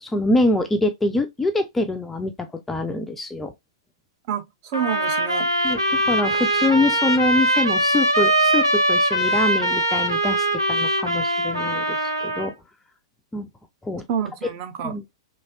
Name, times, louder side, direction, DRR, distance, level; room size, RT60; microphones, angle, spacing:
voice 1, 0.0-3.5 5.6-5.8 6.1-12.5 13.3-13.5 13.8-14.0 14.8-15.0, left 2 dB, 5° left, 0.3 m, -24 dB
voice 2, 4.3-5.5 14.1-14.9, right 8 dB, 35° right, 0.6 m, -28 dB
sound 1, 4.7-12.5, right 1 dB, 85° right, 0.7 m, -21 dB
3.0 x 2.7 x 2.7 m
figure-of-eight pair, 105°, 2 cm